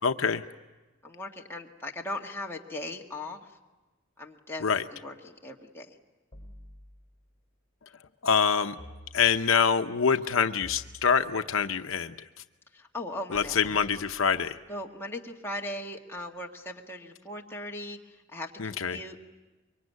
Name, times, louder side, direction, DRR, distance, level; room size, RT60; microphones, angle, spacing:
voice 1, 0.0-0.4 4.6-4.8 8.2-8.8 9.1-12.1 13.3-14.6 18.6-19.0, left 6 dB, 80° left, 8 dB, 0.8 m, -25 dB
voice 2, 1.0-3.5 4.2-5.9 12.7-13.8 14.7-19.2, left 1 dB, 10° left, -1 dB, 2.0 m, -39 dB
sound 1, 6.3-7.4 8.8-9.7 10.6-11.7 13.3-14.8, left 1 dB, 30° left, 4.2 m, -51 dB
24.5 x 24.0 x 9.5 m, 1.1 s
head